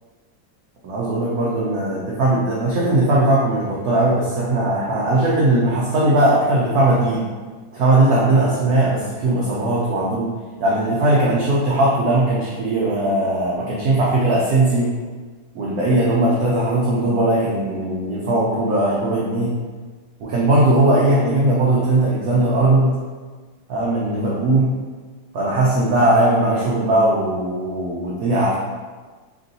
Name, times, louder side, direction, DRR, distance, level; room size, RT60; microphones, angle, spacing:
voice 1, 0.8-7.3 7.7-10.3 10.6-14.9 15.5-19.5 20.2-23.0 23.7-24.8 25.3-28.6, right 2 dB, 70° right, -5 dB, 0.8 m, -19 dB
3.7 x 2.6 x 3.9 m, 1.4 s
omnidirectional pair, 2.2 m